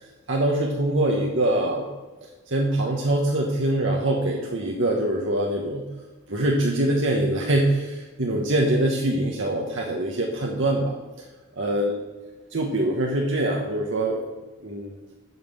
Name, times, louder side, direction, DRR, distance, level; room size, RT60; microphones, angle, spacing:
voice 1, 0.3-1.9 2.5-5.8 6.3-10.9 11.6-11.9 12.5-14.3 14.6-15.0, right 1 dB, 60° right, -1 dB, 1.3 m, -24 dB
9.5 x 5.9 x 7.2 m, 1.3 s
head